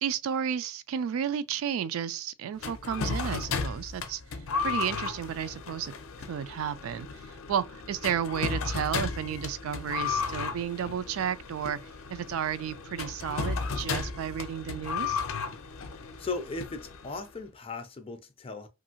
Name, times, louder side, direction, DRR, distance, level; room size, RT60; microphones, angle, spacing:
voice 1, 0.0-4.2 4.6-5.9 6.3-7.1 7.5-11.8 12.1-15.2, right 8 dB, 85° right, 0.3 m, -32 dB
sound 1, 2.6-17.3, left 5 dB, 85° left, 0.5 m, -34 dB
voice 2, 16.2-18.7, left 3 dB, 25° left, 0.4 m, -37 dB
2.7 x 2.5 x 2.8 m
head